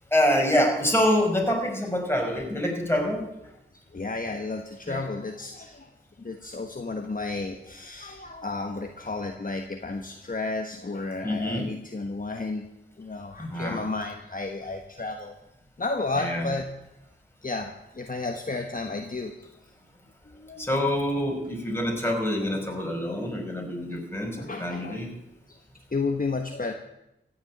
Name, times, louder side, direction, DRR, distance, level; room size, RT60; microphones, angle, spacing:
voice 1, 0.1-3.2 4.9-5.0 11.2-11.7 13.4-13.8 16.2-16.5 20.6-25.1, left 1 dB, 10° left, 0 dB, 5.3 m, -26 dB
voice 2, 3.9-5.9 6.2-12.7 13.0-15.3 15.8-16.7 17.4-19.3 20.3-20.7 22.5-22.6 24.4-25.1 25.5-25.6 25.9-26.7, left 3 dB, 40° left, 4 dB, 1.3 m, -32 dB
15.0 x 7.1 x 8.7 m, 0.85 s
cardioid pair, 45°, 21 cm